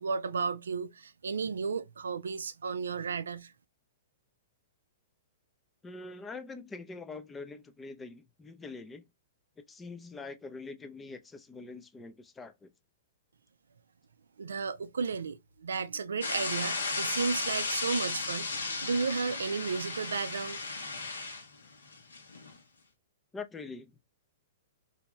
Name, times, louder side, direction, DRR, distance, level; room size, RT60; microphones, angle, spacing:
voice 1, 0.0-3.5 14.4-20.6, right 5 dB, 75° right, 0.4 m, -33 dB
voice 2, 5.8-9.0 9.7-12.7 23.3-23.9, left 3 dB, 15° left, 0.5 m, -44 dB
sound 1, 16.2-22.6, left 3 dB, 80° left, 1.0 m, -35 dB
3.3 x 2.7 x 3.0 m
hypercardioid pair, 115°, 0 cm